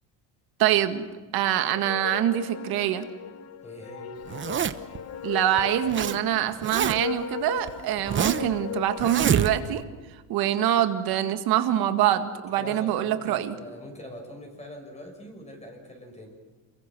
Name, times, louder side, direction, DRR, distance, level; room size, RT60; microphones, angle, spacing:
voice 1, 0.6-1.1 1.3-3.0 5.2-9.8 10.3-13.6, right 12 dB, 70° right, 8 dB, 1.9 m, -25 dB
sound 1, 1.6-9.7, left 8 dB, 40° left, 1.0 m, -37 dB
voice 2, 3.6-4.1 12.6-16.4, equal, 15° left, 2 dB, 6.4 m, -43 dB
Zipper (clothing), 4.3-5.0 5.6-6.2 6.4-7.2 7.7-8.5 9.0-9.8, right 8 dB, 30° right, 0.9 m, -26 dB
28.0 x 22.5 x 6.2 m, 1.4 s
cardioid pair, 130°, 38 cm